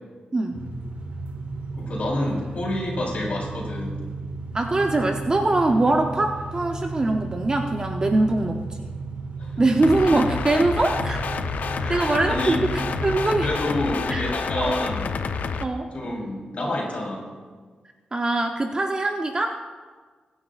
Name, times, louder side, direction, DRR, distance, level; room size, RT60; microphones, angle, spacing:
sound 1, 0.5-13.5, right 3 dB, 75° right, 1.8 m, -34 dB
voice 1, 1.8-4.0 9.4-9.6 11.8-12.6 13.4-15.1 15.9-17.2, left 1 dB, 55° left, -2 dB, 3.6 m, -28 dB
voice 2, 4.5-8.8 9.6-11.2 11.9-13.5 14.1-14.2 14.6-14.8 15.6-15.9 18.1-19.6, right 2 dB, 30° right, 3 dB, 0.7 m, -22 dB
sound 2, 9.8-15.6, left 5 dB, 75° left, 0.6 m, -29 dB
23.0 x 10.0 x 2.4 m, 1.5 s
wide cardioid pair, 120°, 3 cm